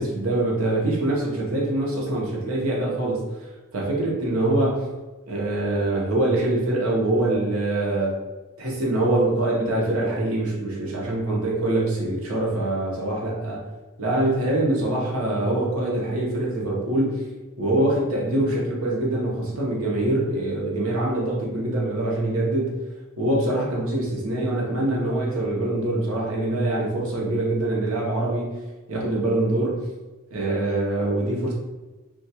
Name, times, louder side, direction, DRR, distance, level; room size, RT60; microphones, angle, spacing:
voice 1, 0.0-3.2 3.7-4.9 5.3-8.2 8.6-13.6 14.0-17.2 17.6-22.8 23.2-28.5 28.9-29.9 30.3-31.5, right 1 dB, 70° right, -3 dB, 0.7 m, -24 dB
2.2 x 2.2 x 2.7 m, 1.2 s
head